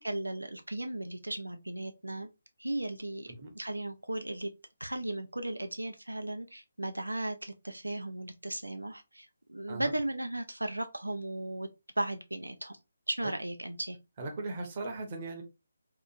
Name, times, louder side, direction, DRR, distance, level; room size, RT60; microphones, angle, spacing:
voice 1, 0.0-2.3 2.6-4.5 4.8-11.7 12.0-12.8 13.1-14.0, right 1 dB, 80° right, 0.3 m, -36 dB
voice 2, 14.2-15.4, right 3 dB, 30° right, 0.7 m, -38 dB
2.7 x 2.4 x 2.3 m
figure-of-eight pair, 145°, 0 cm